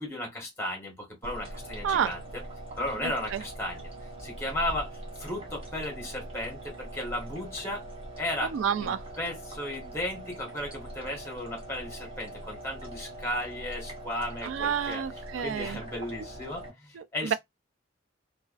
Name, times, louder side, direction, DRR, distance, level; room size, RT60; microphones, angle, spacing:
voice 1, 0.0-2.4 2.8-3.9 4.2-4.9 5.2-7.9 8.2-15.0 15.4-17.3, left 1 dB, 15° left, 1.1 m, -35 dB
sound 1, 1.2-16.7, right 1 dB, 30° right, 0.9 m, -42 dB
voice 2, 3.0-3.4 8.4-9.0 14.4-15.8 16.9-17.3, right 8 dB, 80° right, 0.3 m, -30 dB
2.4 x 2.2 x 2.4 m
head